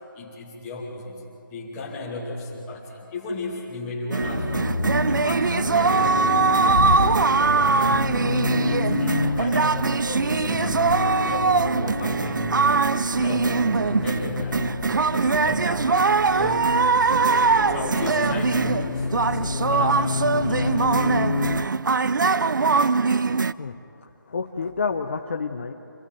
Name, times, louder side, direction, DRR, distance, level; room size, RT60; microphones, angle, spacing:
voice 1, 0.1-4.7 5.1-8.1 8.6-12.5 13.1-21.2, left 3 dB, 10° left, -3 dB, 2.4 m, -35 dB
sound 1, 4.1-23.5, right 4 dB, 60° right, 0.6 m, -22 dB
Accelerating revving vroom, 4.2-21.7, left 3 dB, 80° left, 1.1 m, -29 dB
voice 2, 24.3-25.7, left 5 dB, 35° left, 5 dB, 0.8 m, -28 dB
26.5 x 17.0 x 9.2 m, 2.8 s
figure-of-eight pair, 175°, 11 cm